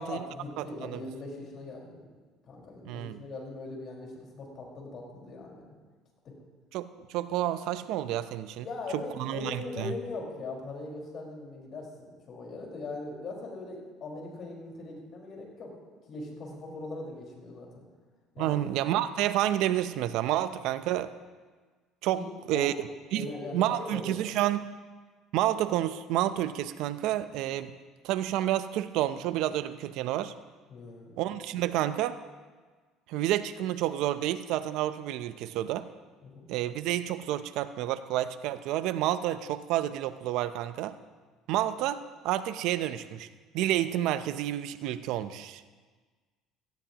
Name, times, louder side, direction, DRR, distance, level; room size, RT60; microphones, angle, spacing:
voice 1, 0.0-2.2 2.5-5.7 8.6-17.8 18.3-18.6 22.1-22.2 22.5-22.8 23.1-24.3 30.7-31.2 36.2-36.5, left 3 dB, 50° left, -1 dB, 4.9 m, -40 dB
voice 2, 0.6-1.0 2.8-3.2 6.7-8.7 8.9-9.9 18.4-21.1 22.0-22.7 23.1-23.3 23.5-24.7 25.3-27.7 28.0-30.3 31.2-32.2 33.1-35.9 36.5-40.9 41.5-43.3 43.5-45.7, right 13 dB, 75° right, 12 dB, 0.7 m, -29 dB
17.5 x 15.0 x 3.0 m, 1.4 s
supercardioid pair, 95°, 0 cm